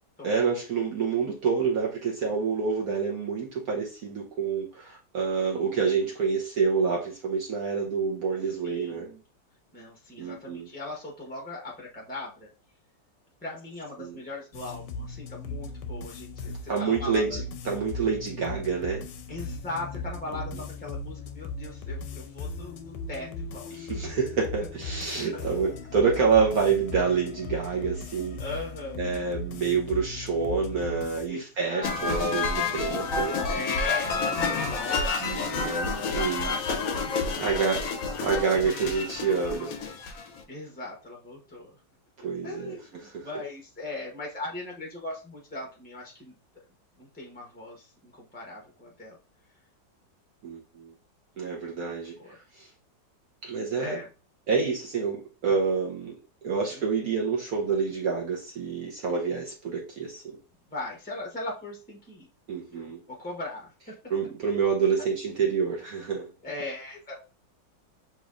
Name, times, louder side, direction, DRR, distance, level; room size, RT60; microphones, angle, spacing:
voice 1, 0.2-9.1 10.2-10.7 14.0-14.2 16.7-19.1 23.7-28.4 29.0-33.4 35.2-36.5 37.4-37.8 38.2-39.7 42.2-42.8 43.0-43.3 50.4-50.9 51.4-52.7 53.4-54.0 54.5-56.2 56.4-60.4 62.5-63.0 64.1-66.3, right 5 dB, 60° right, -1 dB, 1.1 m, -28 dB
voice 2, 8.6-9.2 9.7-12.5 13.4-17.4 19.3-23.7 25.3-25.7 28.4-29.3 31.3-32.2 33.4-35.7 36.1-37.7 40.5-41.7 42.4-46.3 47.0-49.2 51.8-52.4 53.8-54.1 56.7-57.2 60.7-62.3 62.7-63.9 66.4-67.2, left 2 dB, 10° left, -1 dB, 0.5 m, -39 dB
sound 1, 14.5-31.3, left 3 dB, 75° left, 1.2 m, -38 dB
sound 2, 31.8-40.4, left 4 dB, 60° left, 0.9 m, -29 dB
6.9 x 3.0 x 2.5 m, 0.33 s
omnidirectional pair, 2.0 m